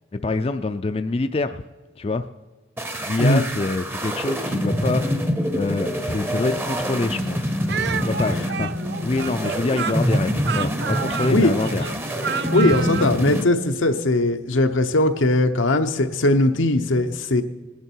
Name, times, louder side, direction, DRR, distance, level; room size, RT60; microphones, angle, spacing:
voice 1, 0.1-1.6 2.0-2.2 3.1-7.6 8.0-8.7 9.0-11.9, left 3 dB, 30° left, 9 dB, 0.4 m, -26 dB
sound 1, 2.8-13.4, equal, 10° right, 0.6 m, -26 dB
Speech, 7.7-13.2, right 6 dB, 60° right, 0.4 m, -29 dB
voice 2, 12.5-17.4, left 2 dB, 90° left, 7 dB, 0.9 m, -19 dB
20.0 x 10.0 x 4.5 m, 1.3 s
head